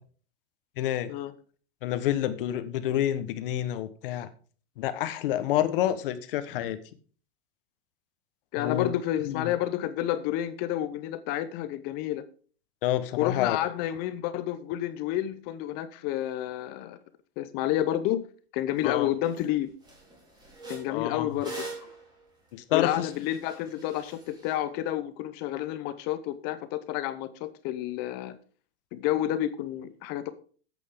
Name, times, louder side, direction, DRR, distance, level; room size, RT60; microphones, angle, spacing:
voice 1, 0.8-1.1 1.8-4.3 4.8-6.8 8.6-8.9 9.3-9.5 12.8-13.6 18.8-19.1 20.9-21.3 22.5-23.1, left 12 dB, 55° left, 1.3 m, -28 dB
voice 2, 8.5-12.2 13.2-17.0 17.4-18.2 18.5-19.7 20.7-21.9 22.7-28.4 28.9-30.3, left 13 dB, 30° left, 0.6 m, -30 dB
sound 1, 18.8-18.9 19.2-19.5 19.8-24.6, right 3 dB, 10° right, 3.8 m, -44 dB
10.0 x 8.4 x 3.7 m
supercardioid pair, 155°, 33 cm